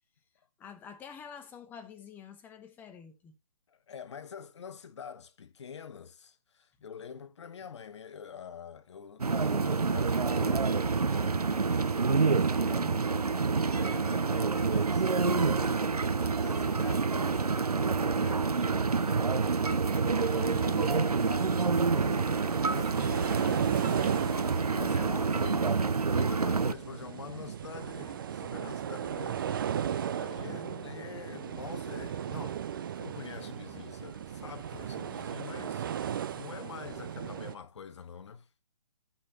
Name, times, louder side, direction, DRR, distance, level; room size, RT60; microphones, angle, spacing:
voice 1, 0.6-3.4 12.6-13.2 20.4-21.0 23.3-23.9 30.4-30.9, left 7 dB, 10° left, 0.8 m, -47 dB
voice 2, 3.7-11.8 12.5-12.8 13.1-23.6 23.8-25.8 26.1-38.5, left 7 dB, 50° left, 1.0 m, -46 dB
sound 1, 9.2-26.7, right 4 dB, 80° right, 0.6 m, -27 dB
sound 2, 20.0-37.5, right 9 dB, 35° right, 0.5 m, -36 dB
16.5 x 5.5 x 2.8 m
figure-of-eight pair, 135°, 19 cm